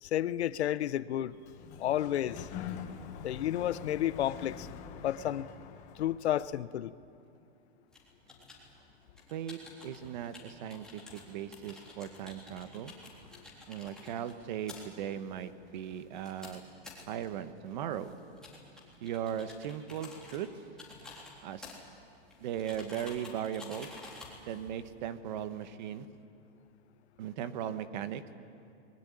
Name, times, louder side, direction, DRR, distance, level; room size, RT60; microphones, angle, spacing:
voice 1, 0.0-1.4 1.8-2.5 3.2-4.7 5.0-5.5 6.0-6.9, left 12 dB, 80° left, 16 dB, 0.9 m, -31 dB
Sliding door, 1.2-6.3, left 8 dB, 25° left, 1.3 m, -45 dB
sound 1, 7.9-25.4, left 3 dB, ahead, 3.7 m, -52 dB
voice 2, 9.3-12.9 13.7-16.6 17.1-18.1 19.0-20.5 21.4-21.7 22.4-23.9 24.5-26.1 27.2-28.2, right 9 dB, 45° right, 11 dB, 1.3 m, -38 dB
25.0 x 21.5 x 9.8 m, 2.6 s
supercardioid pair, 170°, 32 cm